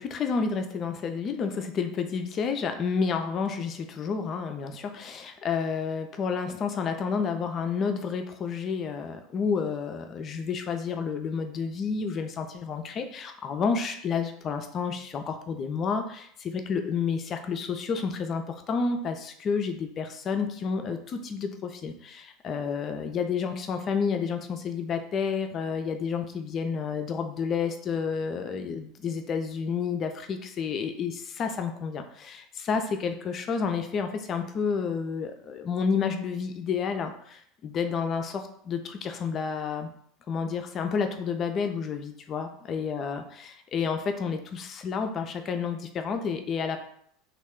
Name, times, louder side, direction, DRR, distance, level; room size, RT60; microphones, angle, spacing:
voice 1, 0.0-39.9 40.3-46.8, left 5 dB, 35° left, 6 dB, 0.4 m, -30 dB
3.1 x 2.3 x 3.5 m, 0.66 s
figure-of-eight pair, 75°, 0 cm